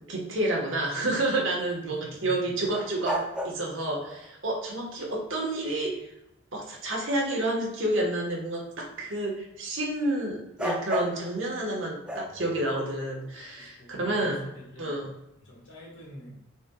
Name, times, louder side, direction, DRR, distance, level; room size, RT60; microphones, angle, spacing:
voice 1, 0.1-6.0 6.5-14.5 14.8-15.1, right 1 dB, 75° right, -1 dB, 1.4 m, -29 dB
voice 2, 1.8-2.5 12.2-12.6 13.6-15.0 15.4-16.3, equal, 65° left, -4 dB, 1.7 m, -46 dB
sound 1, 2.7-4.3 10.6-11.3 12.1-13.5, right 1 dB, 5° right, 0.5 m, -34 dB
5.9 x 3.8 x 2.3 m, 0.86 s
head